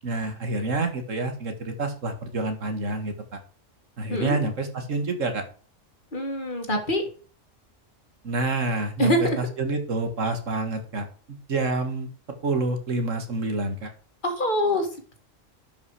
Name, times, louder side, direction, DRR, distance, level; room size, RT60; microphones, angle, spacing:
voice 1, 0.0-3.1 4.0-5.4 8.2-12.1 12.4-13.9, right 2 dB, 75° right, 6 dB, 2.1 m, -28 dB
voice 2, 6.1-7.0 9.0-9.4 14.2-14.9, left 1 dB, 40° left, 4 dB, 2.1 m, -24 dB
11.5 x 5.6 x 4.9 m, 0.39 s
omnidirectional pair, 1.3 m